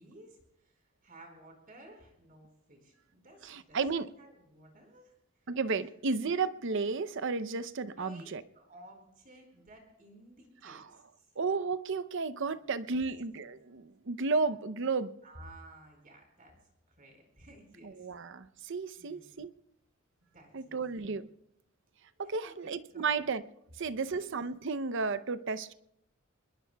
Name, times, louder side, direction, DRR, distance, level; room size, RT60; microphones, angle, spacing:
voice 1, 0.0-3.8 4.2-5.2 5.4-5.5 7.9-8.3 8.5-11.2 12.9-13.2 15.2-16.6 16.9-18.1 18.9-19.4 20.3-21.1 22.2-23.2 24.0-24.3, right 1 dB, 45° right, 4.6 m, -55 dB
voice 2, 3.4-4.1 5.5-8.4 10.6-10.8 11.4-15.1 17.8-19.5 20.5-21.3 22.2-23.4 23.8-25.7, right 4 dB, 65° right, 0.7 m, -33 dB
25.5 x 21.0 x 2.3 m
head